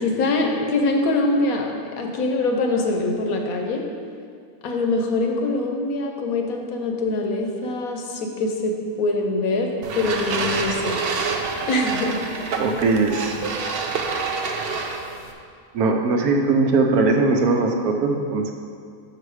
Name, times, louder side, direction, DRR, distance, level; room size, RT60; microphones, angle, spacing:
voice 1, 0.0-3.8 4.6-8.7 9.0-11.0 11.7-12.2, left 2 dB, 70° left, 2 dB, 1.1 m, -23 dB
sound 1, 9.8-15.3, right 4 dB, 90° right, 0.5 m, -27 dB
voice 2, 12.6-13.3 15.7-18.5, right 3 dB, 70° right, 3 dB, 1.1 m, -20 dB
6.6 x 4.8 x 4.7 m, 2.2 s
omnidirectional pair, 1.7 m